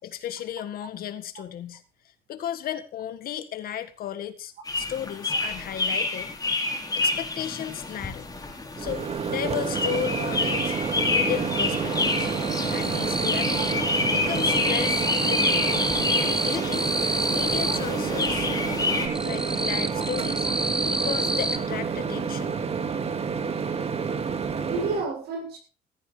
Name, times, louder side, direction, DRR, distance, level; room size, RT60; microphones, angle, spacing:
voice 1, 0.0-1.8 2.3-6.3 6.9-8.3 8.8-10.7 11.1-12.3 12.7-13.8 14.1-15.9 16.4-16.9 17.3-18.5 18.8-20.5 20.9-22.5, left 10 dB, 60° left, 10 dB, 1.8 m, -34 dB
sound 1, 4.7-19.1, left 3 dB, 20° left, 4.2 m, -28 dB
sound 2, 8.3-8.4 8.7-10.0 10.3-11.0 11.2-13.9 14.1-18.3 18.7-21.6, right 1 dB, 5° right, 1.5 m, -29 dB
Microwave oven, 8.8-25.0, right 6 dB, 35° right, 2.0 m, -29 dB
voice 2, 13.3-13.7 19.9-20.0 24.6-25.6, right 4 dB, 70° right, 3 dB, 7.0 m, -31 dB
15.0 x 14.5 x 3.3 m, 0.33 s
cardioid pair, 110°, 17 cm